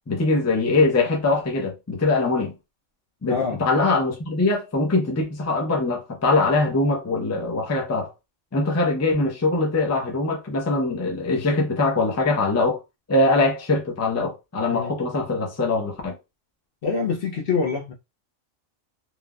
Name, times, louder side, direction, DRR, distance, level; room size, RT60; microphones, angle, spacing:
voice 1, 0.1-2.5 3.2-8.1 8.5-12.8 13.1-16.1, left 3 dB, 20° left, 0.4 m, -22 dB
voice 2, 3.3-3.6 14.7-14.9 16.8-17.9, left 5 dB, 55° left, 0.7 m, -25 dB
3.2 x 2.1 x 2.3 m
omnidirectional pair, 1.3 m